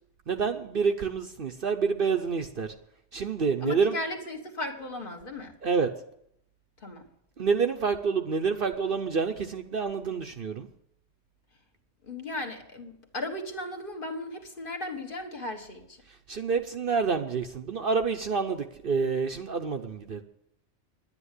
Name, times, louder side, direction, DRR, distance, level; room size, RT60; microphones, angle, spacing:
voice 1, 0.3-2.7 3.1-3.9 5.6-5.9 7.4-10.7 16.3-20.2, right 5 dB, 50° right, 6 dB, 0.9 m, -28 dB
voice 2, 3.6-5.6 6.8-7.1 12.0-16.0, left 2 dB, 45° left, 3 dB, 1.6 m, -36 dB
10.5 x 10.0 x 8.2 m, 0.75 s
omnidirectional pair, 1.3 m